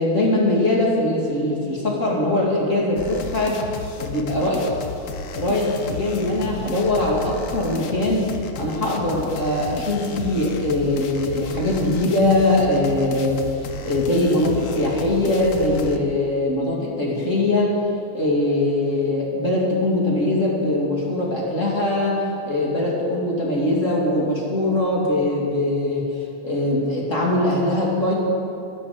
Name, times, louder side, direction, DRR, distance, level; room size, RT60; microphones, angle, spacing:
voice 1, 0.0-3.6 4.0-4.6 5.3-8.3 8.6-13.4 13.8-17.7 18.1-26.1 26.4-28.1, left 1 dB, 35° left, -3 dB, 2.5 m, -21 dB
sound 1, 3.0-16.0, left 5 dB, 85° left, 0.7 m, -33 dB
11.0 x 10.0 x 7.9 m, 2.7 s
omnidirectional pair, 2.4 m